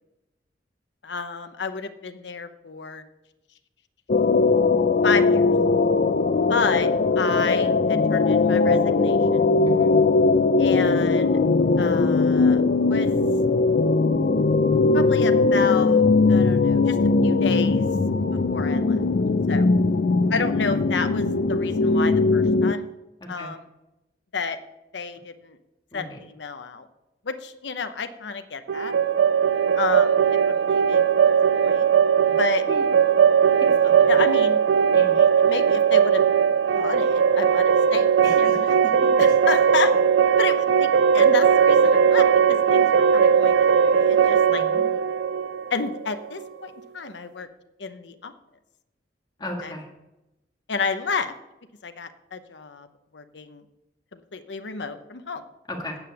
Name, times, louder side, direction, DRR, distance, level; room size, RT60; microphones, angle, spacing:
voice 1, 1.0-3.0 5.0-5.5 6.5-6.9 7.2-9.4 10.6-11.3 11.8-12.6 12.9-13.1 14.9-17.9 18.5-19.0 19.5-19.7 20.3-22.9 23.3-23.6 24.3-24.6 24.9-25.6 25.9-26.9 27.2-28.9 29.8-31.3 31.6-31.9 32.4-32.6 34.1-34.6 35.1-36.2 36.7-38.8 39.2-39.9 40.4-44.6 45.7-47.5 47.8-48.3 49.6-49.7 50.7-51.3 51.8-52.9 53.1-53.6 54.1-55.4, left 4 dB, 75° left, 9 dB, 0.8 m, -31 dB
sound 1, 4.1-22.7, left 3 dB, 55° left, 0.5 m, -20 dB
voice 2, 23.2-23.5 25.9-26.2 32.3-32.4 32.7-32.9 33.6-34.1 34.9-35.2 38.2-39.1 44.4-44.9 49.4-49.9 55.7-56.0, left 1 dB, 25° left, 1 dB, 1.9 m, -36 dB
sound 2, 28.7-46.5, right 7 dB, 80° right, 0.3 m, -19 dB
8.9 x 7.7 x 7.0 m, 0.98 s
head